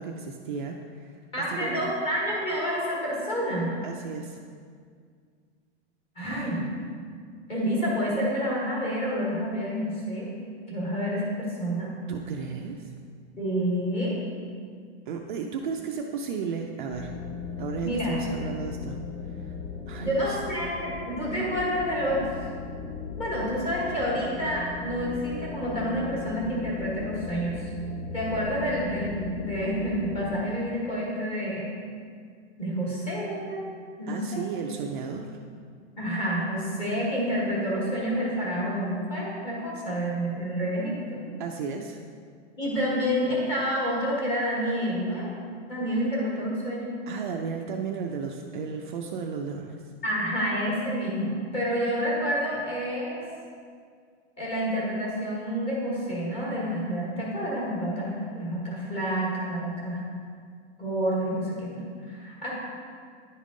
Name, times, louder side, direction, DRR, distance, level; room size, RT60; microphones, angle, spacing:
voice 1, 0.0-1.2 1.5-1.7 3.8-4.4 12.1-12.9 15.1-17.1 17.6-19.0 19.3-19.5 19.9-20.4 34.1-35.3 41.4-42.0 47.1-49.8, right 6 dB, 45° right, 2 dB, 0.4 m, -34 dB
voice 2, 1.3-3.7 6.1-6.7 7.5-10.3 10.7-11.9 13.4-14.2 17.8-18.2 20.0-22.3 23.2-27.7 28.1-31.7 32.6-33.6 34.0-34.5 36.0-41.2 42.6-45.3 45.7-47.0 50.0-53.2 54.4-60.0 60.8-62.5, equal, 15° left, -5 dB, 1.3 m, -29 dB
sound 1, 16.9-30.4, left 5 dB, 70° left, 1.7 m, -37 dB
10.0 x 3.6 x 3.7 m, 2.1 s
supercardioid pair, 175°, 34 cm